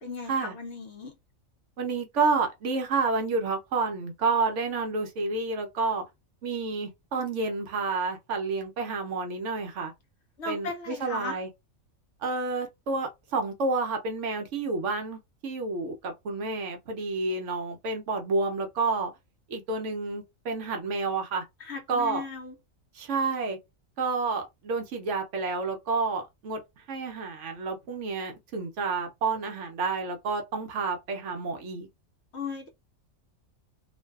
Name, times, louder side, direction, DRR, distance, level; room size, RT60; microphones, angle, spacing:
voice 1, 0.0-1.1 10.4-11.4 21.6-22.5 32.3-32.7, left 4 dB, 60° left, 0.8 m, -37 dB
voice 2, 1.8-6.0 6.4-9.9 10.5-11.5 12.2-19.1 19.5-21.5 21.9-22.2 22.9-23.6 24.0-26.6 26.9-31.9, right 4 dB, 65° right, 0.9 m, -29 dB
2.5 x 2.2 x 2.2 m
omnidirectional pair, 1.4 m